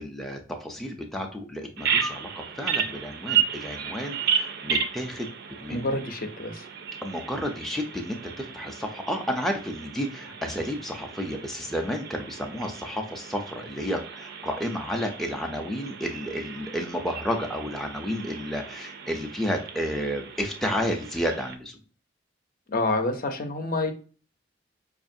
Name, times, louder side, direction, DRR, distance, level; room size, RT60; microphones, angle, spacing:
voice 1, 0.0-6.0 7.0-21.8, equal, ahead, 1 dB, 0.4 m, -31 dB
Bird vocalization bird call bird song, 1.8-21.6, right 7 dB, 60° right, 0.4 m, -33 dB
voice 2, 5.7-6.7 22.7-23.9, left 2 dB, 50° left, 6 dB, 0.6 m, -28 dB
5.1 x 2.4 x 2.6 m, 0.38 s
head